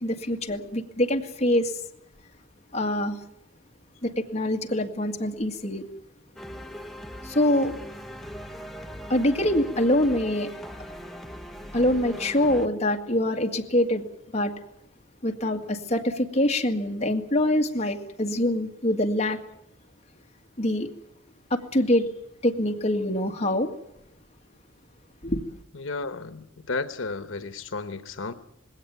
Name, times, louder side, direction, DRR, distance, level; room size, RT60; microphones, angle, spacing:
voice 1, 0.0-1.7 2.7-3.2 4.0-5.9 7.2-7.8 9.1-10.5 11.7-14.1 14.3-14.5 15.2-19.4 20.6-20.9 21.5-22.0 22.4-23.7 25.2-25.4, left 1 dB, 35° left, 2 dB, 2.0 m, -24 dB
sound 1, 6.4-12.7, equal, ahead, 1.3 m, -40 dB
voice 2, 25.7-28.3, left 3 dB, 80° left, 10 dB, 1.1 m, -33 dB
20.0 x 17.5 x 9.3 m, 0.77 s
head